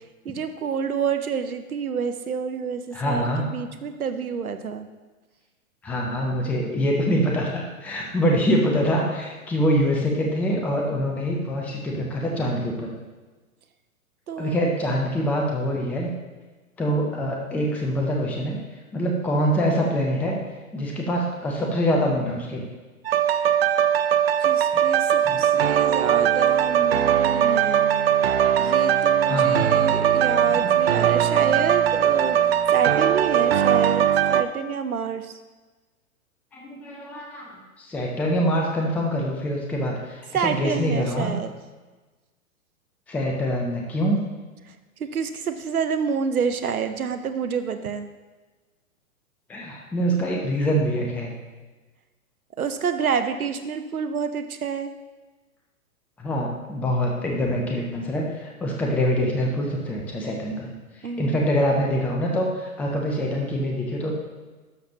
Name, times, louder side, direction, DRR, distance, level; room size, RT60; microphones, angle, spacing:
voice 1, 0.2-4.9 14.3-14.6 24.4-27.9 28.6-35.4 40.3-41.5 45.0-48.1 52.6-54.9 61.0-61.4, right 6 dB, 80° right, 9 dB, 0.8 m, -28 dB
voice 2, 2.9-3.5 5.8-12.9 14.4-16.1 16.8-18.6 18.9-20.4 20.7-22.7 25.2-25.4 29.3-29.7 30.5-30.8 36.5-41.3 43.1-44.2 49.5-51.3 56.2-60.7 61.2-64.1, equal, 5° left, -1 dB, 0.5 m, -25 dB
sound 1, 23.0-34.4, right 9 dB, 45° right, 0.4 m, -20 dB
12.0 x 5.9 x 2.8 m, 1.3 s
figure-of-eight pair, 115°, 43 cm